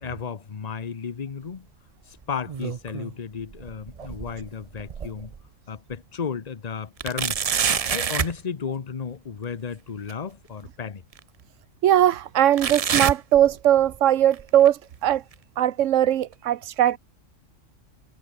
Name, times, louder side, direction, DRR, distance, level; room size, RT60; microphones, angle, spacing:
voice 1, 0.0-1.7 2.1-5.3 5.7-7.5 7.9-11.0, left 6 dB, 35° left, 1.0 m, -33 dB
sound 1, 2.2-3.1 3.5-5.4 5.9-6.0 7.0-8.4 10.1-10.2 11.1-11.2 12.6-14.0 14.3-14.7 15.3-15.4 16.3-16.4, right 7 dB, 45° right, 0.5 m, -28 dB
voice 2, 11.8-15.2 15.6-17.0, right 11 dB, 70° right, 1.1 m, -20 dB
omnidirectional pair, 1.3 m